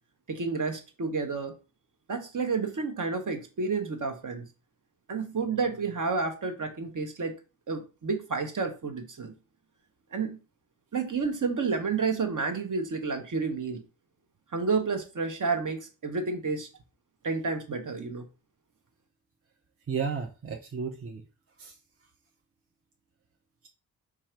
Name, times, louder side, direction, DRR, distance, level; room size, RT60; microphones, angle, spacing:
voice 1, 0.3-1.6 2.1-4.5 5.1-7.4 7.7-9.3 10.1-10.4 10.9-13.8 14.5-16.7 17.2-18.2, right 4 dB, 60° right, 1.0 m, -30 dB
voice 2, 19.9-21.2 21.6-21.7, right 6 dB, 40° right, 0.6 m, -33 dB
4.6 x 2.5 x 4.4 m
wide cardioid pair, 110°, 35 cm